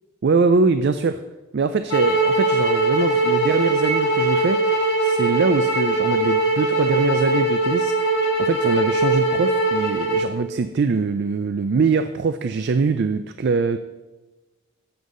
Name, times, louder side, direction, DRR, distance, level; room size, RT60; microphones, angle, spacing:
voice 1, 0.2-1.2 1.5-4.6 5.0-8.0 8.4-13.8, right 4 dB, 50° right, 10 dB, 0.3 m, -22 dB
sound 1, 1.9-10.3, right 2 dB, 50° left, 2.6 m, -21 dB
10.5 x 8.0 x 3.8 m, 1.2 s
head